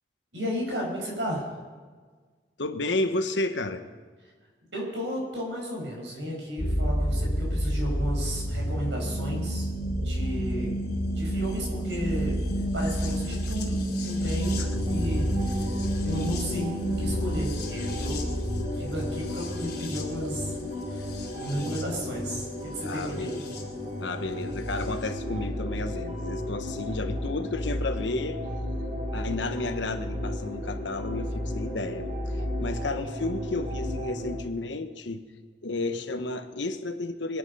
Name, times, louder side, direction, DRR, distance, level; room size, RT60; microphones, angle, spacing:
voice 1, 0.3-1.5 4.7-9.7 10.0-10.8 11.2-12.4 12.7-13.8 14.0-14.6 14.9-15.8 16.0-18.4 18.7-20.5 20.9-23.3, equal, 80° right, -1 dB, 5.7 m, -34 dB
voice 2, 2.6-3.8 14.6-14.7 22.8-23.4 24.0-28.4 29.1-35.2 35.6-37.4, left 2 dB, 85° left, 9 dB, 1.1 m, -32 dB
sound 1, 6.6-23.6 24.8-24.9, equal, 65° left, 2.5 m, -30 dB
sound 2, 14.4-34.4, left 1 dB, 45° right, 4.1 m, -34 dB
23.0 x 10.0 x 5.5 m, 1.5 s
head